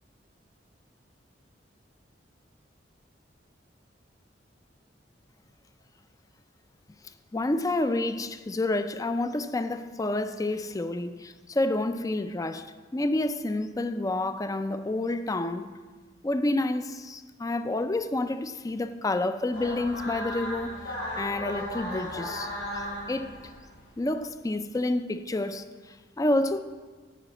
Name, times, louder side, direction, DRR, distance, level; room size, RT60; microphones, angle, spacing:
voice 1, 7.3-15.7 16.2-23.5 24.0-26.6, left 2 dB, 20° left, 0.4 m, -29 dB
sound 1, 19.5-23.9, left 1 dB, 85° left, 3.3 m, -36 dB
11.0 x 5.1 x 7.6 m
head